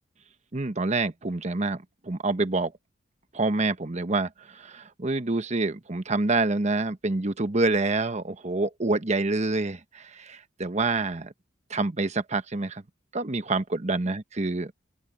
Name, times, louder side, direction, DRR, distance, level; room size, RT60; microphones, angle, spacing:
voice 1, 0.5-2.7 3.3-11.3 11.7-12.8 13.1-14.7, right 3 dB, 35° right, 1.1 m, -27 dB
open air
head